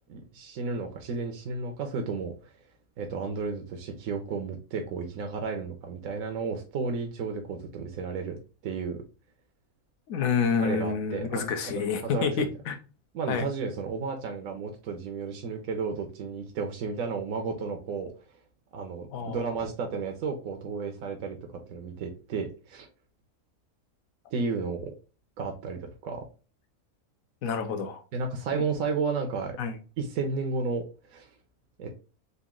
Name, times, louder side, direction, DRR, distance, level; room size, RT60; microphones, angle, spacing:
voice 1, 0.1-2.5 3.0-8.4 8.6-9.0 10.6-11.7 12.0-12.5 13.1-18.1 18.7-22.9 24.3-24.9 25.4-26.2 28.1-29.6 30.0-31.3 31.8-31.9, right 4 dB, 70° right, 3 dB, 1.1 m, -33 dB
voice 2, 10.1-12.8 13.3-13.5 19.1-19.5 27.4-28.0 28.5-28.6 29.6-29.7, left 6 dB, 70° left, 6 dB, 1.2 m, -28 dB
4.0 x 2.6 x 3.6 m, 0.34 s
omnidirectional pair, 1.6 m